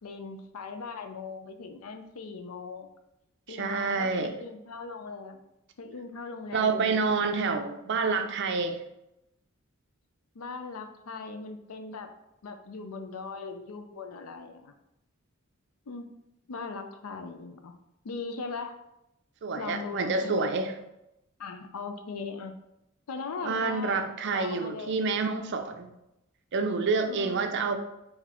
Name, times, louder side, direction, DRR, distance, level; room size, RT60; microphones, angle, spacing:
voice 1, 0.0-2.9 3.5-5.4 5.8-7.3 10.3-12.1 12.4-14.7 15.9-16.1 16.5-17.7 18.0-18.8 19.6-20.5 21.4-22.5 23.1-25.0 25.4-25.5 27.1-27.7, left 4 dB, 90° left, 7 dB, 0.5 m, -39 dB
voice 2, 3.5-4.4 6.5-8.8 19.4-20.7 23.4-25.9 26.5-27.8, right 4 dB, 55° right, 7 dB, 0.5 m, -28 dB
4.0 x 2.8 x 4.2 m, 0.88 s
head